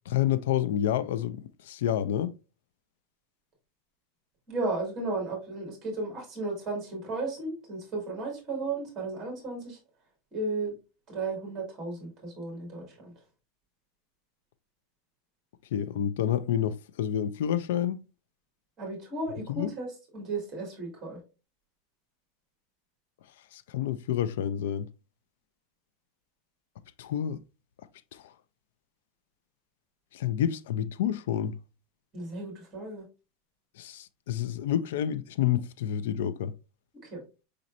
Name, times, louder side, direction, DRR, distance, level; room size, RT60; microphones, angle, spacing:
voice 1, 0.1-2.3 15.7-18.0 19.5-19.7 23.5-24.9 27.0-27.4 28.1-28.3 30.1-31.6 33.8-36.5, left 10 dB, 80° left, 0.4 m, -29 dB
voice 2, 4.5-9.8 10.3-10.7 11.1-13.1 18.8-19.9 20.1-21.2 32.1-33.0 37.0-37.2, right 3 dB, 20° right, 2.1 m, -34 dB
5.0 x 4.2 x 2.5 m
supercardioid pair, 175°, 0 cm